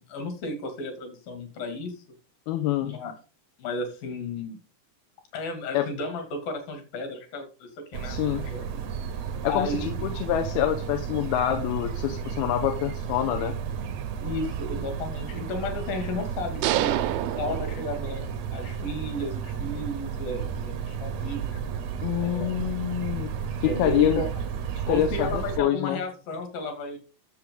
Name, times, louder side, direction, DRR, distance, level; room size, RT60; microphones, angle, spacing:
voice 1, 0.1-1.9 2.8-3.1 3.6-4.6 5.3-8.9 9.5-10.2 14.2-17.0 17.4-18.3 18.5-21.6 22.2-22.5 23.7-24.3 24.9-27.0, left 2 dB, 70° left, 5 dB, 4.1 m, -33 dB
voice 2, 2.5-3.0 5.7-5.9 8.0-8.5 9.4-13.6 22.0-23.3 23.6-24.2 24.9-26.0, left 12 dB, 85° left, 5 dB, 2.8 m, -26 dB
sound 1, 7.9-25.6, right 7 dB, 70° right, 1.8 m, -33 dB
sound 2, 16.6-18.5, right 14 dB, 85° right, 2.6 m, -28 dB
11.5 x 7.3 x 3.8 m, 0.34 s
omnidirectional pair, 4.4 m